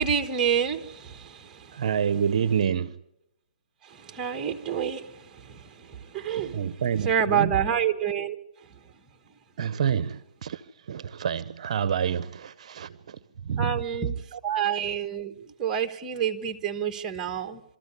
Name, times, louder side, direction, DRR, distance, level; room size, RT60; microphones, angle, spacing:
voice 1, 0.0-1.9 3.8-8.8 13.6-17.6, right 8 dB, 15° right, 1.3 m, -28 dB
voice 2, 1.7-3.0 6.5-7.5 9.6-13.8 14.3-14.4, right 8 dB, 55° right, 0.7 m, -28 dB
24.0 x 13.5 x 9.7 m
hypercardioid pair, 150°, 4 cm